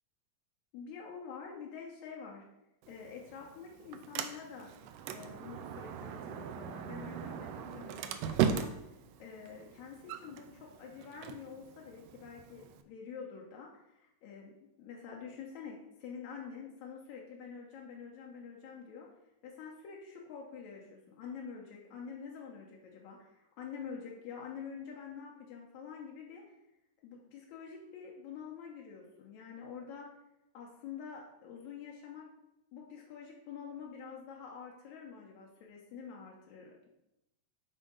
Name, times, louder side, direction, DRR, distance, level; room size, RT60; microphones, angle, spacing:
voice 1, 0.7-2.4 2.9-4.7 5.1-8.8 9.2-14.5 14.8-19.1 19.4-26.4 27.0-30.1 30.5-32.3 32.7-36.9, left 6 dB, 80° left, -1 dB, 2.2 m, -47 dB
Sliding door, 2.8-12.8, right 8 dB, 85° right, 1.4 m, -39 dB
7.9 x 3.7 x 5.2 m, 0.88 s
omnidirectional pair, 3.3 m